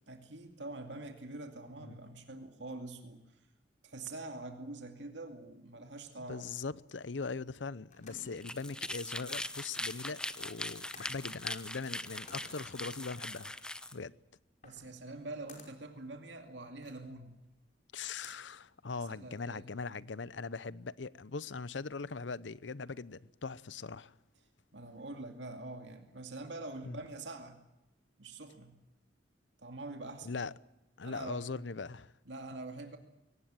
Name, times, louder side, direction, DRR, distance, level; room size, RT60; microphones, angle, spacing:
voice 1, 0.1-3.2 3.8-6.5 14.6-17.3 18.9-19.6 24.7-27.6 28.2-28.7 29.6-30.4 31.0-31.4 32.3-33.0, right 2 dB, 80° right, 2.5 m, -45 dB
voice 2, 6.3-13.5 13.9-14.1 17.9-24.1 26.8-27.0 30.2-30.5 31.0-32.1, left 4 dB, 90° left, 0.8 m, -41 dB
sound 1, 7.9-19.4, left 3 dB, 45° left, 5.3 m, -59 dB
sound 2, 8.3-14.0, left 1 dB, 5° left, 0.9 m, -41 dB
23.5 x 18.5 x 9.0 m
head